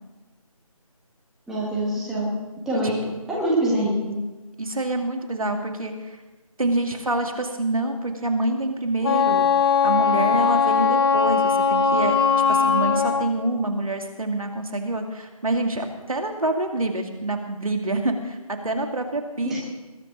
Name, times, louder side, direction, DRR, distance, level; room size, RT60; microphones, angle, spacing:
voice 1, 1.5-2.3 2.6-3.0 3.3-4.1 19.4-19.6, right 1 dB, ahead, -6 dB, 1.5 m, -24 dB
voice 2, 4.6-6.2 6.6-9.5 9.8-12.2 12.5-19.6, right 2 dB, 70° right, 4 dB, 2.6 m, -26 dB
Wind instrument woodwind instrument, 9.0-13.3, left 5 dB, 40° left, 1.3 m, -20 dB
21.0 x 10.0 x 5.3 m, 1.2 s
figure-of-eight pair, 160°, 19 cm